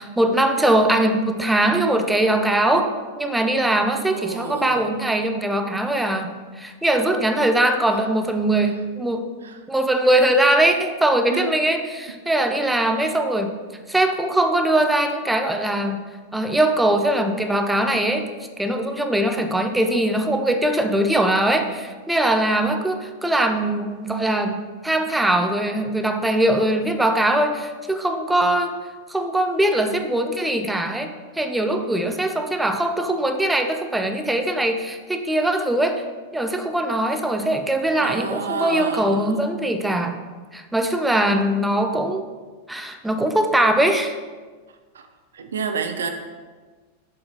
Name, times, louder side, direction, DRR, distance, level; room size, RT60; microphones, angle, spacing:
voice 1, 0.0-9.3 9.7-13.5 13.9-16.1 16.3-18.3 18.6-28.7 29.1-36.0 36.3-40.2 40.5-42.3 42.7-44.2, right 1 dB, 5° right, 5 dB, 0.6 m, -21 dB
voice 2, 4.1-4.9 9.4-9.6 11.3-11.5 38.0-39.5 44.9-45.1 45.3-46.1, right 6 dB, 65° right, 6 dB, 0.6 m, -29 dB
6.6 x 3.9 x 5.3 m, 1.4 s
figure-of-eight pair, 90°, 0 cm